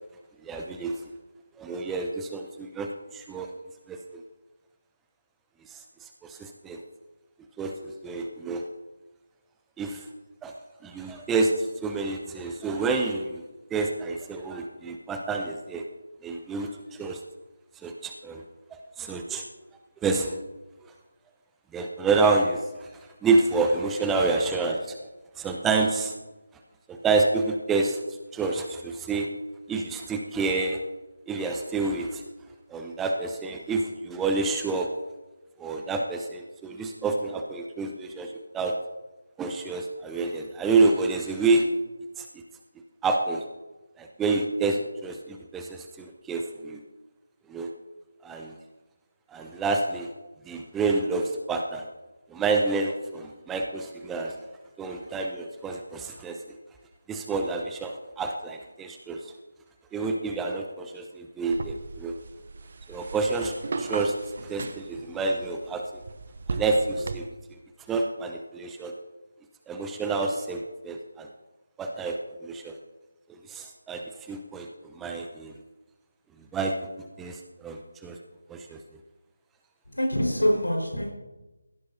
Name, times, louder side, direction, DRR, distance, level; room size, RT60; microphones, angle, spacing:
voice 1, 0.4-1.0 1.6-3.5 3.9-4.2 5.7-6.8 7.6-8.6 9.8-10.1 10.4-10.5 10.8-13.4 13.7-15.8 16.2-17.2 17.8-18.4 18.7-19.4 20.0-20.4 21.7-22.9 23.2-25.1 25.4-26.1 26.9-28.0 28.3-29.3 29.7-30.8 31.3-32.2 32.7-34.9 35.6-38.7 39.4-41.6 42.2-42.3 43.0-43.4 44.0-46.8 47.5-47.7 48.2-48.5 49.3-50.1 50.5-51.9 52.3-54.4 54.8-56.4 57.1-59.3 59.9-62.1 62.9-64.1 64.4-65.8 66.5-67.6 67.9-68.9 69.7-71.3 71.8-72.2 72.4-72.8 73.3-74.0 74.3-75.6 76.5-76.8 77.2-78.2 78.5-78.8, right 3 dB, 5° right, 3 dB, 0.5 m, -28 dB
sound 1, 61.5-67.2, right 3 dB, 40° right, 0.8 m, -37 dB
voice 2, 79.9-81.1, equal, 70° left, 0 dB, 4.5 m, -25 dB
16.5 x 11.0 x 2.7 m, 1.1 s
figure-of-eight pair, 160°, 0 cm